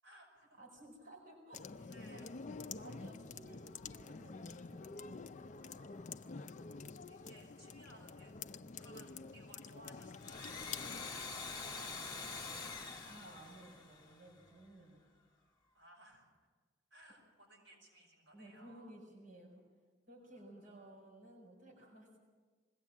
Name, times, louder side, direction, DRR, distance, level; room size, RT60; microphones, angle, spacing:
voice 1, 0.0-0.6 1.9-2.3 5.5-6.5 7.1-12.8 15.7-16.3 16.9-18.9 20.3-20.7, right 1 dB, 70° right, 0 dB, 5.9 m, -62 dB
voice 2, 0.6-2.3 2.7-5.0 13.0-15.1 18.3-19.6 20.1-22.2, right 1 dB, 45° right, -3 dB, 4.9 m, -56 dB
sound 1, 1.5-11.1, left 4 dB, 40° left, 0.5 m, -48 dB
Domestic sounds home sounds, 10.1-14.6, left 4 dB, 20° left, 1.9 m, -45 dB
21.5 x 17.0 x 7.3 m, 1.4 s
head